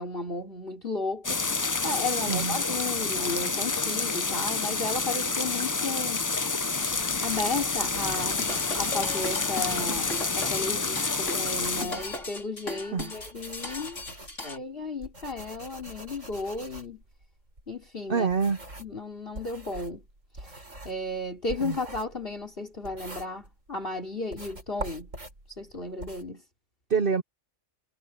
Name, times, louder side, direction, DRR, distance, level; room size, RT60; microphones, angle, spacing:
voice 1, 0.0-6.3 7.2-8.4 8.8-10.1 10.3-14.0 14.4-17.0 17.7-18.3 18.8-20.0 20.4-20.6 20.8-25.1 25.6-26.4, left 3 dB, 45° left, 4.0 m, -34 dB
sound 1, 1.2-11.8, left 3 dB, 30° left, 0.4 m, -28 dB
voice 2, 2.3-2.6 12.9-13.1 18.1-18.6 21.6-21.8 26.9-27.2, right 5 dB, 50° right, 0.9 m, -26 dB
sound 2, 6.8-10.8 11.3-19.0 19.3-23.8 24.3-26.3, right 1 dB, 80° right, 8.4 m, -44 dB
sound 3, 8.1-14.6, left 3 dB, 70° left, 4.5 m, -37 dB
omnidirectional pair, 1.3 m